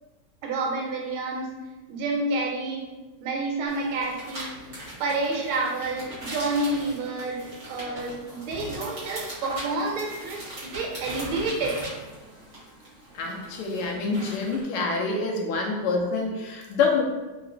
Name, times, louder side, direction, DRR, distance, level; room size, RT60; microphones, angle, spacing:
voice 1, 0.4-1.6 1.9-2.9 3.2-4.6 5.0-11.9, right 2 dB, 80° right, 0 dB, 1.5 m, -29 dB
sound 1, 3.7-14.6, right 1 dB, 45° right, 1.5 m, -40 dB
voice 2, 13.2-17.0, left 4 dB, 90° left, 1 dB, 1.5 m, -26 dB
3.9 x 2.9 x 2.7 m, 1.1 s
omnidirectional pair, 2.3 m